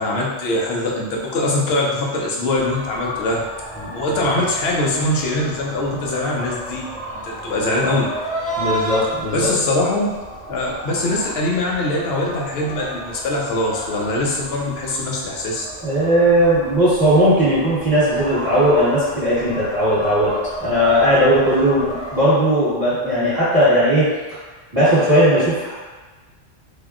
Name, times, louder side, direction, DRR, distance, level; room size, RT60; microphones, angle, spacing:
voice 1, 0.0-3.4 3.9-6.9 7.2-8.1 9.3-10.1 10.5-15.6, left 2 dB, 65° left, -2 dB, 0.8 m, -22 dB
sound 1, 2.5-22.2, right 1 dB, 10° left, 0.5 m, -32 dB
voice 2, 8.6-9.5 15.8-20.3 20.6-24.1 24.7-25.7, equal, 20° right, -13 dB, 1.2 m, -17 dB
3.4 x 2.2 x 2.4 m, 1.3 s
omnidirectional pair, 1.2 m